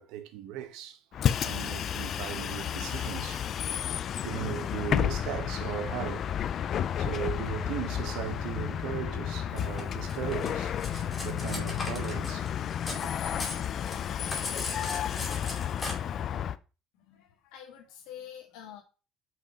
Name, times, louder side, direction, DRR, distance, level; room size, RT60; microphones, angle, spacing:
voice 1, 0.0-3.5 4.2-6.3 7.0-12.5 12.9-13.1, right 11 dB, 75° right, 1.0 m, -38 dB
Bus, 1.1-16.6, left 9 dB, 40° left, 0.4 m, -32 dB
Cutlery silverware, 9.8-13.1 13.3-15.9, left 2 dB, 15° left, 2.5 m, -39 dB
voice 2, 16.9-18.8, left 9 dB, 85° left, 1.5 m, -47 dB
5.7 x 4.6 x 5.0 m
cardioid pair, 150°, 0 cm